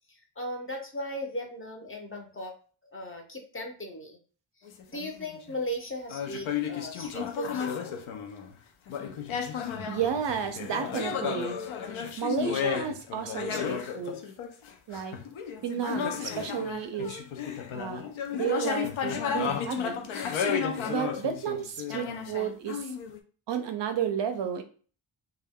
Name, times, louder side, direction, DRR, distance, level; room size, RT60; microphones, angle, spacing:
voice 1, 0.1-2.5 2.9-4.2 4.6-7.8, equal, 25° left, 2 dB, 0.6 m, -37 dB
sound 1, 4.7-5.5 6.1-8.6 8.9-23.2, left 7 dB, 75° left, 0.5 m, -33 dB
voice 2, 9.9-11.6 12.2-14.2 14.9-15.1 15.6-17.2 17.7-18.0 18.3-20.1 20.9-22.9 23.5-24.6, right 8 dB, 65° right, 7 dB, 0.5 m, -32 dB
2.2 x 2.2 x 3.4 m, 0.40 s
wide cardioid pair, 120°, 48 cm